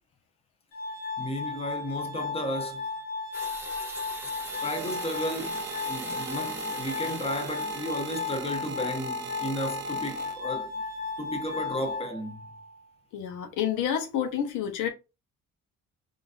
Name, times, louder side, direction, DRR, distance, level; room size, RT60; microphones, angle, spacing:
Glass, 0.7-12.7, left 4 dB, 55° left, 0.7 m, -35 dB
voice 1, 1.2-2.9 4.2-4.3 4.6-10.7 11.2-12.5, equal, 20° left, 0.8 m, -34 dB
sound 1, 3.3-8.7, right 1 dB, 10° right, 1.0 m, -42 dB
sound 2, 4.0-10.8 11.6-11.9, right 6 dB, 40° right, 0.5 m, -41 dB
voice 2, 13.1-14.9, left 9 dB, 90° left, 0.8 m, -29 dB
3.9 x 2.5 x 2.4 m
cardioid pair, 90°, 30 cm